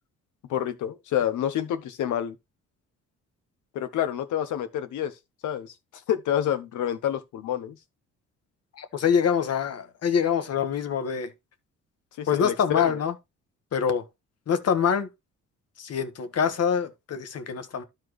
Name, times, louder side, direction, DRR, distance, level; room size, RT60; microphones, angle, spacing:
voice 1, 0.5-2.3 3.7-5.1 5.4-5.7 6.1-7.8 12.2-13.0, left 10 dB, 80° left, 1.2 m, -28 dB
voice 2, 8.8-11.3 12.3-13.1 13.7-14.0 14.5-15.1 15.8-17.8, left 7 dB, 55° left, 1.4 m, -25 dB
12.5 x 4.4 x 3.2 m
cardioid pair, 90°, 30 cm